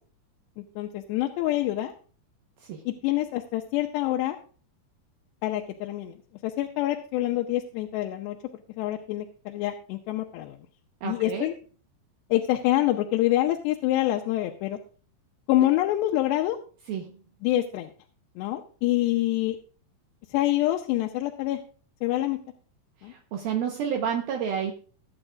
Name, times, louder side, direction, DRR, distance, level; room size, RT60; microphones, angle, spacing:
voice 1, 0.6-1.9 2.9-4.4 5.4-6.2 6.4-8.4 8.8-10.6 11.0-11.5 12.3-14.8 15.5-16.6 17.4-17.9 18.4-19.6 20.3-21.6 22.0-22.4 23.0-23.1, left 15 dB, 85° left, 2 dB, 3.0 m, -26 dB
voice 2, 11.0-11.5 15.6-15.7 16.9-17.2 23.0-24.7, right 8 dB, 70° right, 2 dB, 2.7 m, -30 dB
21.0 x 8.9 x 2.5 m, 0.40 s
omnidirectional pair, 4.8 m